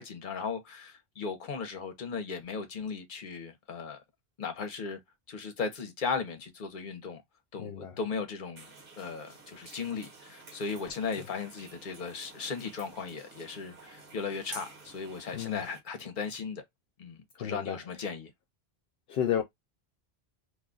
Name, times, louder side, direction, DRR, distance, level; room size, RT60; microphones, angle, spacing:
voice 1, 0.0-4.0 4.4-5.0 5.3-7.2 7.5-8.7 9.0-16.6 17.0-18.3, left 5 dB, 50° left, 1.0 m, -37 dB
voice 2, 7.6-8.0 15.3-15.6 17.4-17.8 19.1-19.4, left 9 dB, 75° left, 0.8 m, -31 dB
sound 1, 8.6-15.8, right 3 dB, 55° right, 1.3 m, -51 dB
2.6 x 2.3 x 3.7 m
omnidirectional pair, 1.1 m